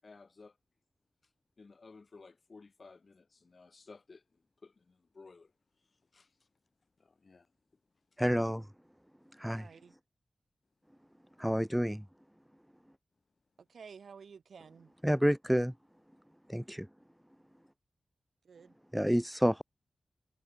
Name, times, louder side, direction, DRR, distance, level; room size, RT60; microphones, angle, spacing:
voice 1, 0.0-0.6 1.6-5.5 5.8-6.3 7.0-7.5, left 4 dB, 45° left, 2.9 m, -56 dB
voice 2, 8.2-8.7 9.4-9.7 11.4-12.0 15.0-15.7 16.5-16.9 18.9-19.6, equal, ahead, 0.4 m, -29 dB
voice 3, 9.4-10.0 13.6-14.9 18.4-18.8, right 6 dB, 85° right, 2.0 m, -52 dB
wide cardioid pair, 115°, 0 cm